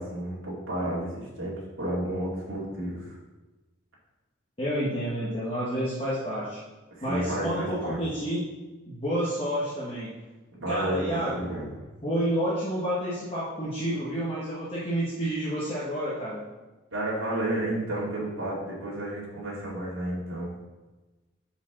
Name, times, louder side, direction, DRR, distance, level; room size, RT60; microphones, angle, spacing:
voice 1, 0.0-3.1 7.0-8.0 10.5-11.9 16.9-20.5, right 1 dB, 80° right, -6 dB, 2.5 m, -31 dB
voice 2, 4.6-6.6 7.0-8.5 8.8-10.1 10.7-11.5 12.0-16.4, equal, 25° left, -9 dB, 1.4 m, -29 dB
5.5 x 4.9 x 5.8 m, 1.1 s
head